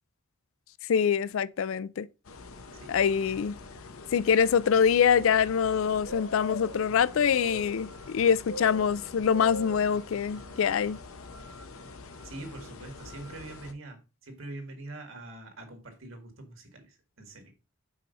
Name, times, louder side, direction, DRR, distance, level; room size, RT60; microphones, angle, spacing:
voice 1, 0.9-2.1 2.9-3.6 4.1-11.0, left 7 dB, 70° left, 0.4 m, -24 dB
sound 1, 2.3-13.7, left 2 dB, 85° left, 0.8 m, -42 dB
voice 2, 2.7-3.4 12.2-17.5, right 2 dB, 65° right, 1.9 m, -44 dB
5.6 x 4.7 x 5.2 m
head